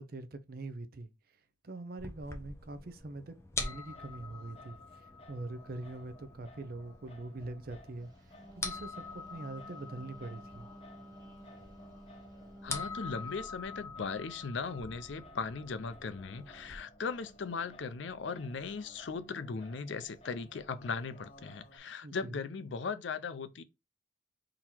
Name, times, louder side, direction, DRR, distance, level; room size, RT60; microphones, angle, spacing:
voice 1, 0.0-1.4 1.6-8.1 8.6-10.7 22.0-22.5, right 2 dB, 50° right, 0.6 m, -43 dB
sound 1, 2.0-16.8, left 4 dB, 15° left, 0.7 m, -45 dB
Singing, 3.6-21.8, equal, 30° left, 1.0 m, -57 dB
Wind instrument woodwind instrument, 8.1-13.5, right 1 dB, 20° right, 1.4 m, -53 dB
voice 2, 12.6-23.6, left 5 dB, 75° left, 0.5 m, -38 dB
3.8 x 2.9 x 4.4 m
head